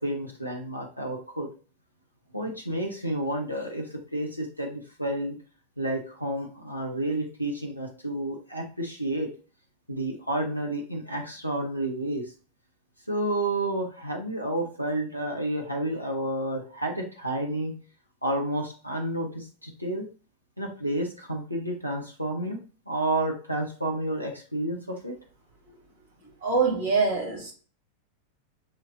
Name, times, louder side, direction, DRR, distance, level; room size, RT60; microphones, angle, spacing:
voice 1, 0.0-1.5 2.3-5.4 5.8-9.3 9.9-12.3 13.1-17.8 18.2-20.1 20.6-22.6 22.9-25.1, right 1 dB, 90° right, 0 dB, 0.8 m, -30 dB
voice 2, 26.2-27.5, right 4 dB, 60° right, -1 dB, 2.1 m, -25 dB
6.6 x 3.0 x 2.7 m, 0.38 s
figure-of-eight pair, 90°, 0 cm